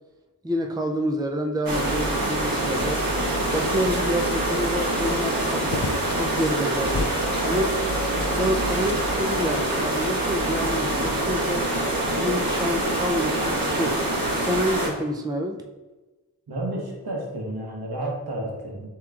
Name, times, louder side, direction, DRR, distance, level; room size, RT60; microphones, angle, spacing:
voice 1, 0.4-3.2 3.5-5.9 6.1-7.8 8.4-11.7 12.2-14.0 14.4-15.6, equal, 10° right, 4 dB, 0.4 m, -28 dB
sound 1, 1.7-14.9, right 1 dB, 65° right, 1.2 m, -25 dB
sound 2, 3.5-9.4, left 4 dB, 65° left, 0.5 m, -37 dB
voice 2, 16.5-18.9, right 1 dB, 85° right, -1 dB, 1.1 m, -31 dB
7.1 x 3.0 x 2.4 m, 1.2 s
wide cardioid pair, 50°, 37 cm